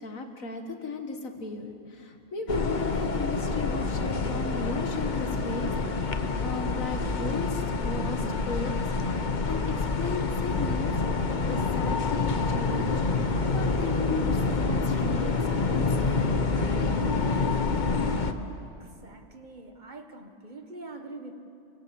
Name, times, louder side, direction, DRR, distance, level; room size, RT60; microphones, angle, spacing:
voice 1, 0.0-8.7 9.0-10.9 11.5-12.9 13.5-16.3, left 3 dB, 90° left, 5 dB, 2.2 m, -36 dB
sound 1, 2.5-18.3, left 4 dB, 40° left, 1.1 m, -27 dB
voice 2, 18.8-21.4, right 2 dB, 35° right, 5 dB, 1.8 m, -44 dB
29.0 x 24.5 x 7.2 m, 2.7 s
omnidirectional pair, 1.4 m